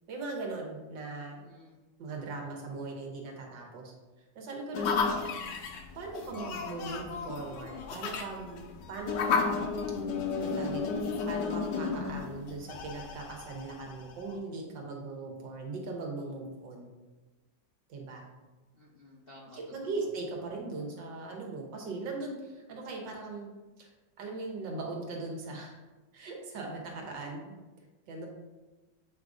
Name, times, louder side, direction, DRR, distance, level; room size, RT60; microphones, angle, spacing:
voice 1, 0.1-1.4 2.0-3.9 4.4-4.9 6.0-9.6 10.4-10.9 11.3-16.9 17.9-18.3 19.5-23.5 23.8-23.9 24.2-25.8 26.1-27.5 28.1-28.3, right 3 dB, 80° right, 1 dB, 1.8 m, -39 dB
voice 2, 1.3-1.8 18.7-20.0, left 1 dB, 55° left, -3 dB, 0.6 m, -55 dB
sound 1, 4.7-14.3, left 5 dB, 75° left, 1.3 m, -33 dB
7.9 x 2.6 x 4.8 m, 1.2 s
omnidirectional pair, 2.0 m